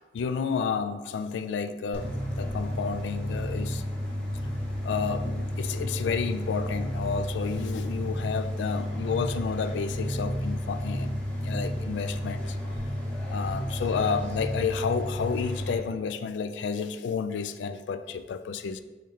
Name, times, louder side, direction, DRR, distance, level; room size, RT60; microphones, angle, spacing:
voice 1, 0.1-3.8 4.8-11.1 11.4-12.6 13.3-18.8, left 6 dB, 80° left, 10 dB, 0.3 m, -31 dB
sound 1, 1.9-15.7, equal, 5° left, 0.8 m, -32 dB
4.2 x 3.2 x 3.8 m, 1.2 s
head